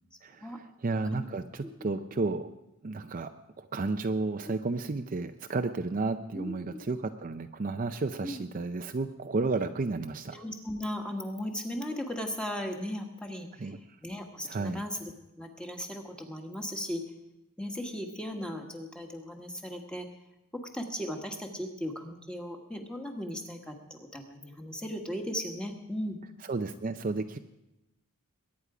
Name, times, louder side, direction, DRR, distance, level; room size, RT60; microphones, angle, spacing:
voice 1, 0.2-2.5 2.8-3.3 3.6-10.4 13.6-13.8 14.4-14.8 26.4-27.4, right 3 dB, 40° right, 7 dB, 0.5 m, -32 dB
voice 2, 6.3-6.8 8.2-8.4 10.3-13.5 14.0-15.0 15.4-17.0 17.6-20.1 20.5-26.2, equal, 5° left, 2 dB, 1.5 m, -37 dB
22.0 x 9.6 x 4.9 m, 0.93 s
head